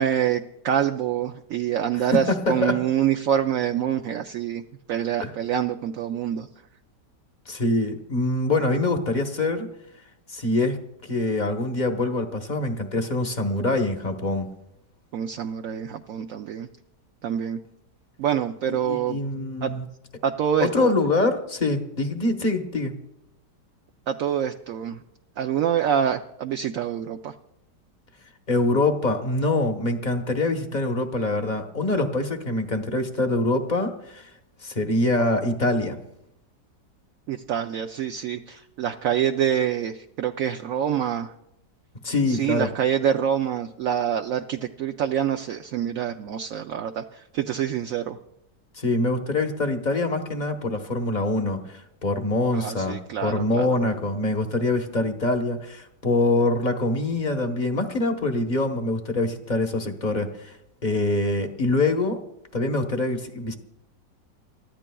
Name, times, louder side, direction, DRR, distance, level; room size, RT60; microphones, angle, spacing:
voice 1, 0.0-4.6 4.9-6.5 15.1-16.7 17.2-17.6 18.2-19.2 19.6-19.7 20.2-20.9 24.1-25.0 25.4-27.3 37.3-41.3 42.3-48.2 52.5-53.7, right 9 dB, 65° right, 5 dB, 0.9 m, -26 dB
voice 2, 2.1-2.8 5.2-5.3 7.5-9.7 10.3-10.8 11.0-14.5 18.7-19.8 20.6-22.9 28.5-34.3 34.6-36.0 42.0-42.7 48.8-60.5 60.8-62.2 62.5-63.5, left 2 dB, 30° left, 4 dB, 1.1 m, -24 dB
29.5 x 13.5 x 2.3 m, 0.81 s
omnidirectional pair, 1.9 m